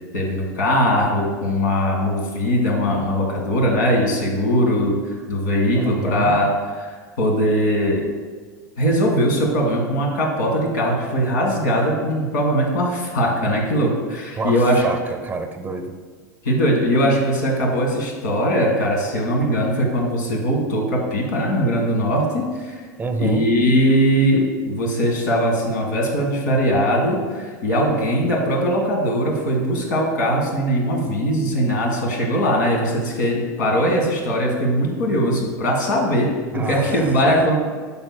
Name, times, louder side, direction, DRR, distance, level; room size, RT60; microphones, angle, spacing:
voice 1, 0.1-8.0 8.8-14.9 16.4-22.8 23.2-37.6, equal, 80° left, -1 dB, 1.8 m, -20 dB
voice 2, 5.7-6.4 14.4-16.0 23.0-23.5 36.5-37.5, right 3 dB, 15° right, 6 dB, 0.7 m, -28 dB
8.7 x 5.8 x 2.3 m, 1.5 s
hypercardioid pair, 100°, 10 cm